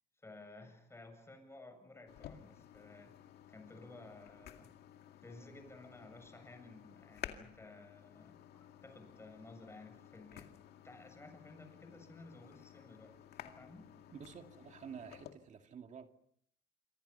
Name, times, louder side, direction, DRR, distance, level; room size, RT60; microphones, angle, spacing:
voice 1, 0.2-3.1 3.5-4.7 5.2-10.6 10.8-13.1 13.4-14.0, left 2 dB, 15° left, 7.5 m, -55 dB
sound 1, 2.1-15.3, left 11 dB, 70° left, 2.2 m, -54 dB
voice 2, 14.1-16.1, right 7 dB, 45° right, 2.4 m, -50 dB
28.0 x 25.0 x 5.6 m
cardioid pair, 110°, 17 cm